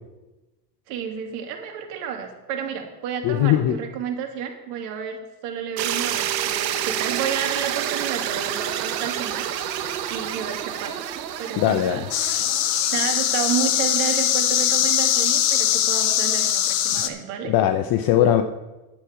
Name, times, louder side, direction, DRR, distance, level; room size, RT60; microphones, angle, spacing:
voice 1, 0.9-9.5 10.1-11.1 11.4-17.5, right 8 dB, 60° right, 3 dB, 2.3 m, -31 dB
voice 2, 3.2-3.8 11.6-12.0 17.5-18.4, left 11 dB, 45° left, 9 dB, 0.7 m, -19 dB
sound 1, 5.8-13.8, right 10 dB, 80° right, 1.1 m, -29 dB
sound 2, 12.1-17.1, left 11 dB, 75° left, 1.1 m, -21 dB
10.0 x 8.4 x 4.9 m, 1.1 s
hypercardioid pair, 85°, 50 cm